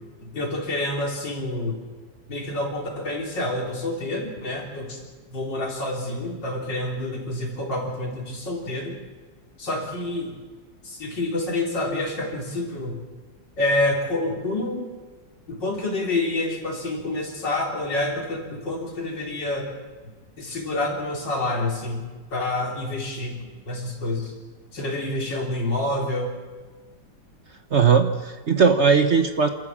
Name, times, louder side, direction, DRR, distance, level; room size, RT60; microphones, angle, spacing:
voice 1, 0.2-1.8 2.3-5.0 5.3-9.0 9.6-10.3 10.8-12.9 13.6-14.9 15.5-19.7 20.4-22.1 22.3-24.3 24.7-26.3, left 2 dB, 75° left, 0 dB, 4.4 m, -28 dB
voice 2, 27.7-29.5, right 5 dB, 45° right, 7 dB, 1.1 m, -18 dB
28.5 x 13.5 x 7.4 m, 1.4 s
omnidirectional pair, 2.0 m